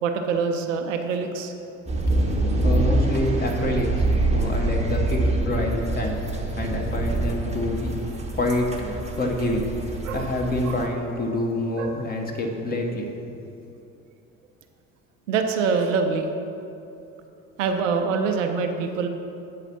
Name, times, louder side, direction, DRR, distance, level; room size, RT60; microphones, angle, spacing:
voice 1, 0.0-1.5 10.0-10.3 10.7-10.8 11.8-11.9 15.3-16.3 17.6-19.1, right 5 dB, 65° right, 5 dB, 0.7 m, -25 dB
sound 1, 1.9-10.9, right 2 dB, 15° right, 0.9 m, -25 dB
voice 2, 2.2-6.2 6.6-7.9 8.3-9.7 10.1-13.4, left 1 dB, 20° left, 1 dB, 1.1 m, -27 dB
7.5 x 4.9 x 6.0 m, 2.7 s
figure-of-eight pair, 60°, 40 cm